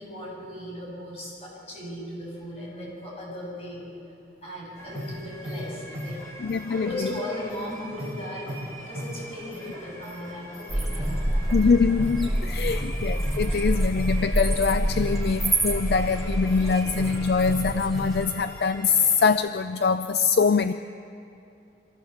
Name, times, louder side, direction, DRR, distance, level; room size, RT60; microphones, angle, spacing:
voice 1, 0.0-3.9 4.4-6.2 6.7-8.5 8.8-11.4 12.6-13.0 13.5-13.6, left 1 dB, 35° left, -4 dB, 7.1 m, -37 dB
sound 1, 4.8-19.3, equal, 15° left, 3.0 m, -38 dB
voice 2, 6.4-7.1 11.5-20.7, left 5 dB, 60° left, 11 dB, 0.4 m, -23 dB
sound 2, 10.7-18.2, right 1 dB, ahead, 2.5 m, -27 dB
24.5 x 15.0 x 7.2 m, 2.6 s
head